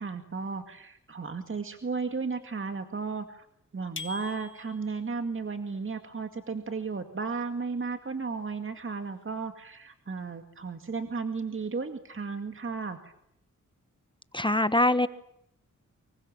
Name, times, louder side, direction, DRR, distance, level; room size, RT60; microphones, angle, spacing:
voice 1, 0.0-3.5 3.7-13.1, right 4 dB, 45° right, 7 dB, 2.2 m, -34 dB
sound 1, 4.0-5.1, left 4 dB, 40° left, 2.3 m, -42 dB
voice 2, 14.3-15.1, left 1 dB, 15° left, 12 dB, 1.3 m, -23 dB
25.0 x 23.0 x 8.8 m, 0.78 s
cardioid pair, 75°, 30 cm